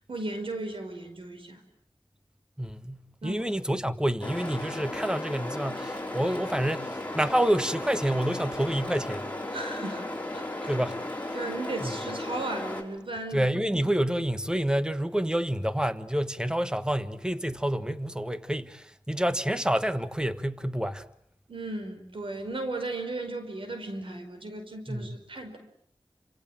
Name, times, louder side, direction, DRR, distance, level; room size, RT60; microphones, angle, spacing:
voice 1, 0.1-1.6 3.2-3.5 9.5-10.1 10.3-10.7 11.3-13.4 21.5-25.6, right 2 dB, 90° right, 5.1 m, -35 dB
voice 2, 2.6-9.2 10.7-10.9 11.8-12.0 13.3-21.0 24.9-25.2, right 1 dB, 10° right, 1.4 m, -28 dB
sound 1, 4.2-12.8, left 1 dB, 15° left, 6.2 m, -35 dB
29.5 x 27.0 x 7.5 m
wide cardioid pair, 75°, 9 cm